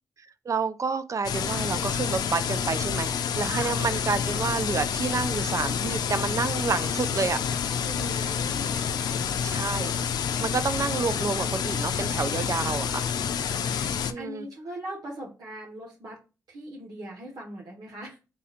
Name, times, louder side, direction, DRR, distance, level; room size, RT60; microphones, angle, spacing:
voice 1, 0.5-7.6 9.4-13.1 14.1-14.5, right 5 dB, 50° right, 0.5 m, -29 dB
sound 1, 1.2-14.1, left 7 dB, 85° left, 0.4 m, -28 dB
voice 2, 7.8-8.8 12.5-12.8 13.3-16.2 16.5-18.2, right 1 dB, 75° right, 1.4 m, -40 dB
4.3 x 3.7 x 2.5 m
cardioid pair, 55°, 7 cm